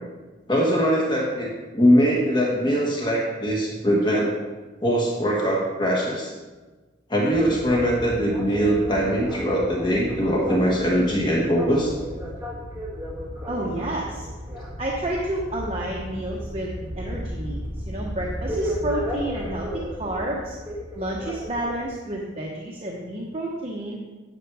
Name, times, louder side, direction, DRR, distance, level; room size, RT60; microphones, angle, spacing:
voice 1, 0.5-4.3 4.8-6.3 7.1-11.9 13.6-13.7, equal, 25° left, -3 dB, 1.5 m, -22 dB
sound 1, 7.3-21.9, equal, 10° right, 1.9 m, -34 dB
voice 2, 13.5-14.3 14.8-19.7 20.0-20.6 20.9-24.0, right 1 dB, 30° right, -2 dB, 1.0 m, -30 dB
9.9 x 6.9 x 4.8 m, 1.2 s
head